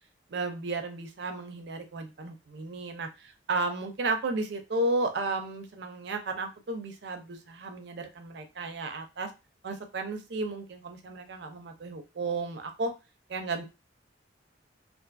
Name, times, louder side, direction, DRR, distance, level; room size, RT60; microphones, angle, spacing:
voice 1, 0.3-9.3 9.6-12.9 13.3-13.6, right 2 dB, 60° right, 6 dB, 0.5 m, -33 dB
2.6 x 2.5 x 2.2 m, 0.26 s
head